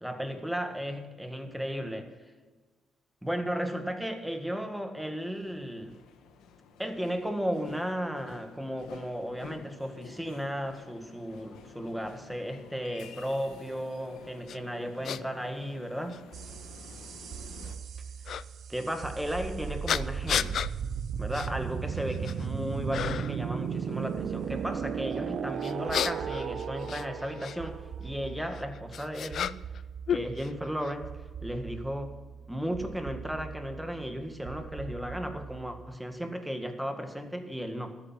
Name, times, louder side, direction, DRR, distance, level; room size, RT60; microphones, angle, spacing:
voice 1, 0.0-2.1 3.2-6.0 6.8-16.2 18.7-20.6 21.2-29.6 30.1-32.1 32.5-38.0, equal, 5° right, 6 dB, 1.7 m, -35 dB
sound 1, 5.3-17.8, left 6 dB, 85° left, 1.3 m, -51 dB
sound 2, 14.5-14.6 15.1-15.2 16.1-16.2 18.3-18.4 19.9-20.7 21.3-21.5 22.0-22.5 22.9-23.4 25.6-27.6 28.5-29.8 30.1-30.9, left 9 dB, 60° left, 0.4 m, -32 dB
sound 3, 16.3-36.0, right 7 dB, 65° right, 0.8 m, -37 dB
13.5 x 8.9 x 5.7 m, 1.3 s
cardioid pair, 90°, 0 cm